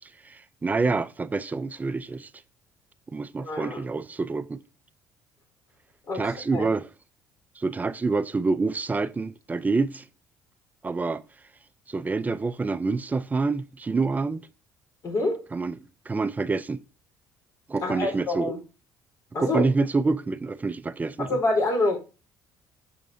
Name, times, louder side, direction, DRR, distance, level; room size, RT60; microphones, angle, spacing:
voice 1, 0.2-2.3 3.1-4.6 6.1-6.9 7.6-10.0 10.8-11.2 11.9-14.5 15.5-15.8 16.1-16.8 17.7-18.5 19.4-21.4, right 3 dB, 20° right, 0.5 m, -27 dB
voice 2, 3.4-3.8 6.1-6.7 15.0-15.4 17.8-18.6 19.3-19.6 21.2-22.0, left 2 dB, 45° left, 3.8 m, -26 dB
7.1 x 6.0 x 2.7 m
supercardioid pair, 85°, 8 cm